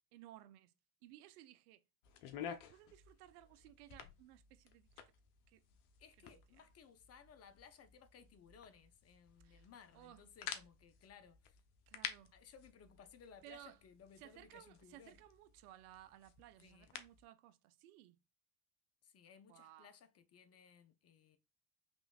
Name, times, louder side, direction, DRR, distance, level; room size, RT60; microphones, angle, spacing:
voice 1, 0.1-0.7 1.0-1.8 2.4-4.9 5.5-5.6 6.2-6.3 9.4-9.7 9.9-10.3 11.9-12.3 13.4-13.8 14.2-18.2 19.5-19.9, right 14 dB, 70° right, 0.6 m, -59 dB
sound 1, 2.0-17.2, left 8 dB, 55° left, 0.9 m, -53 dB
voice 2, 6.0-11.6 12.3-15.2 16.6-16.9 19.0-21.4, left 7 dB, 35° left, 0.7 m, -61 dB
5.1 x 3.1 x 2.3 m
hypercardioid pair, 70°, 46 cm